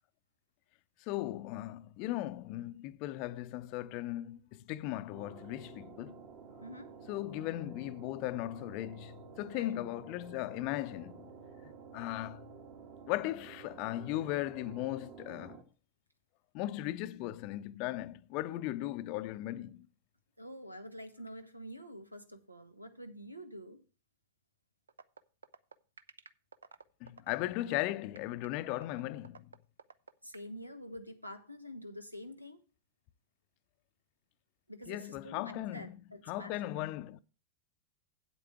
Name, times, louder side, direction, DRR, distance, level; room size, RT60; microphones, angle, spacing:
voice 1, 1.1-6.2 7.1-11.3 11.6-12.5 13.1-15.6 16.5-19.9 27.0-29.5 34.9-36.0 36.3-37.2, left 16 dB, 45° left, 0.5 m, -37 dB
sound 1, 5.1-15.6, right 5 dB, 45° right, 2.0 m, -52 dB
voice 2, 6.6-6.9 9.5-9.7 18.5-18.6 20.4-23.8 30.2-32.6 34.7-36.7, equal, 90° right, 1.1 m, -47 dB
sound 2, 24.9-30.5, right 5 dB, 75° right, 0.5 m, -52 dB
8.5 x 8.3 x 4.4 m
figure-of-eight pair, 90°, 0 cm